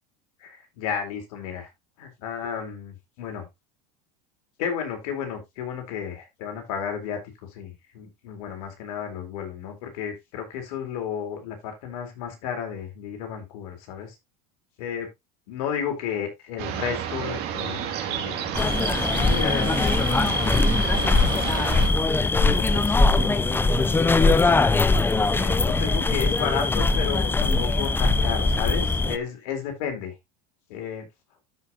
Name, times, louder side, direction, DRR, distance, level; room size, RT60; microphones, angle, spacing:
voice 1, 0.4-1.7 2.0-3.5 4.6-14.2 14.8-15.1 15.5-18.6 18.8-21.8 22.2-24.9 25.3-30.1 30.7-31.1, left 7 dB, 75° left, 4 dB, 3.9 m, -33 dB
sound 1, 16.6-21.9, right 9 dB, 55° right, 2.6 m, -31 dB
sound 2, 18.5-29.2, left 3 dB, 10° left, 0.6 m, -21 dB
13.0 x 5.5 x 2.9 m, 0.20 s
supercardioid pair, 110°, 19 cm